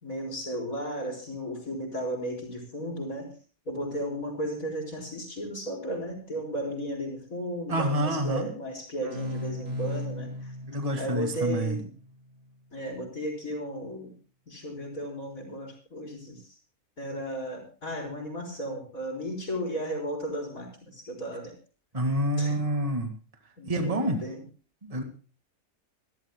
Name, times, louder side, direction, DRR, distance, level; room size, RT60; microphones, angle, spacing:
voice 1, 0.0-3.3 3.6-10.6 11.0-11.9 12.7-14.1 14.5-16.6 17.0-21.5 22.4-22.6 23.6-24.4, right 1 dB, 60° left, -1 dB, 4.7 m, -34 dB
voice 2, 7.7-8.5 10.7-11.8 21.9-23.1 23.7-24.2 24.8-25.0, right 1 dB, 25° right, 5 dB, 2.0 m, -27 dB
sound 1, 9.0-12.5, left 1 dB, 40° right, 3.0 m, -37 dB
28.5 x 13.0 x 2.2 m, 0.38 s
omnidirectional pair, 1.6 m